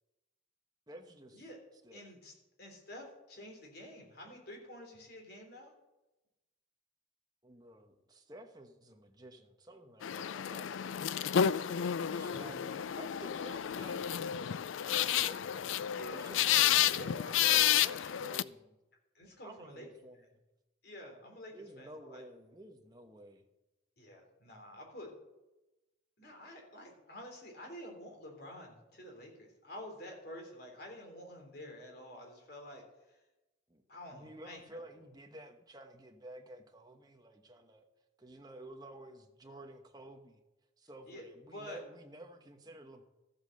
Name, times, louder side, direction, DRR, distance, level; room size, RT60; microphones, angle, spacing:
voice 1, 0.9-1.4 1.8-2.0 7.4-11.3 12.1-15.7 16.1-18.8 19.4-20.4 21.5-23.4 33.7-33.8 34.1-37.8 38.2-40.4 40.8-43.0, right 1 dB, 20° right, 4 dB, 1.1 m, -52 dB
voice 2, 1.9-2.3 2.6-5.7 12.0-12.5 15.9-16.2 16.7-18.2 19.1-19.9 20.8-22.2 24.0-25.1 26.2-33.2 33.9-34.8 41.1-41.2 41.5-41.8, left 1 dB, 50° left, 1 dB, 3.3 m, -49 dB
sound 1, 10.0-18.4, left 10 dB, 75° left, 0.4 m, -31 dB
13.5 x 8.1 x 6.6 m, 1.0 s
head